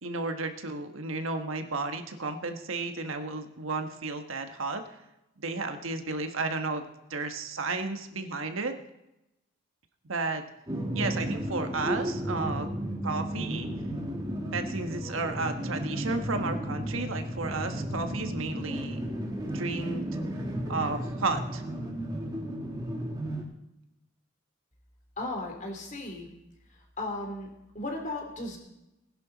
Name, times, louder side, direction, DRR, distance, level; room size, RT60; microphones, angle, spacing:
voice 1, 0.0-4.8 5.4-6.8 7.1-8.7 10.1-10.4 10.9-12.7 13.0-13.7 14.5-19.0 19.4-20.0 20.7-21.6, right 3 dB, 75° right, 6 dB, 1.3 m, -33 dB
sound 1, 10.7-23.4, right 1 dB, 20° right, 2.0 m, -33 dB
voice 2, 25.2-26.3 26.7-27.5 27.7-28.6, left 2 dB, 35° left, 2 dB, 3.1 m, -35 dB
20.0 x 11.0 x 4.1 m, 0.91 s
head